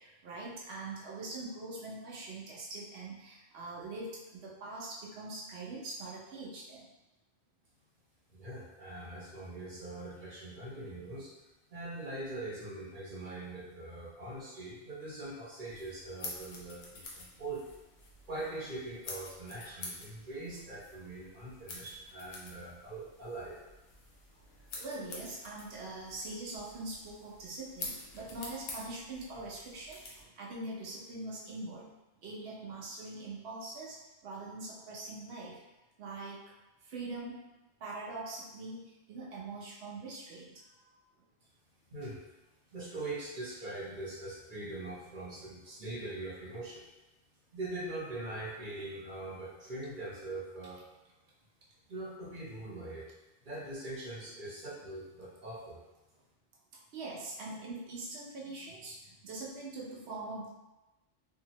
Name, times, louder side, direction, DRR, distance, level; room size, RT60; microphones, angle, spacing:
voice 1, 0.0-6.9 24.7-31.9 32.2-35.6 36.0-36.4 36.8-37.5 37.8-41.0 56.9-60.5, right 2 dB, 80° right, -5 dB, 0.9 m, -43 dB
voice 2, 8.3-11.4 11.7-17.7 18.2-23.6 41.9-42.2 42.7-46.8 47.5-50.8 51.9-53.0 53.4-55.8, right 2 dB, 50° right, -5 dB, 0.9 m, -42 dB
sound 1, 15.6-30.2, left 2 dB, 70° left, 0.9 m, -48 dB
2.8 x 2.6 x 2.9 m, 1.0 s
omnidirectional pair, 1.1 m